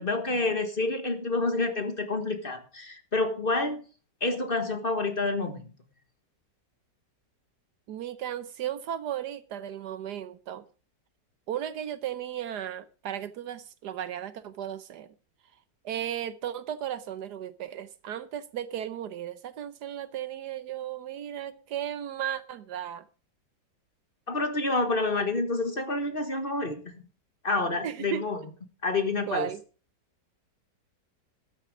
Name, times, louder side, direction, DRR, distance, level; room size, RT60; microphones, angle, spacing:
voice 1, 0.0-3.8 4.2-5.7 24.3-26.9 27.4-28.4 28.8-29.5, left 3 dB, 30° left, 8 dB, 1.6 m, -28 dB
voice 2, 7.9-10.6 11.5-15.1 15.8-23.0 27.8-28.2 29.3-29.6, right 10 dB, 70° right, 15 dB, 1.3 m, -35 dB
12.5 x 9.8 x 4.9 m, 0.36 s
omnidirectional pair, 1.9 m